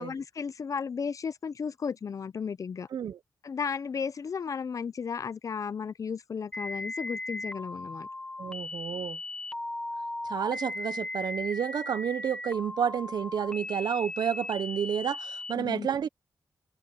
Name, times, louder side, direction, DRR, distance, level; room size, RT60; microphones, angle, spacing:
voice 1, 0.0-2.9 3.4-8.1 15.6-15.9, left 6 dB, 50° left, 0.6 m, -34 dB
sound 1, 6.5-15.5, left 2 dB, 15° left, 1.8 m, -37 dB
voice 2, 8.4-9.2 10.2-16.1, right 8 dB, 85° right, 0.9 m, -30 dB
wide cardioid pair, 100°, 7 cm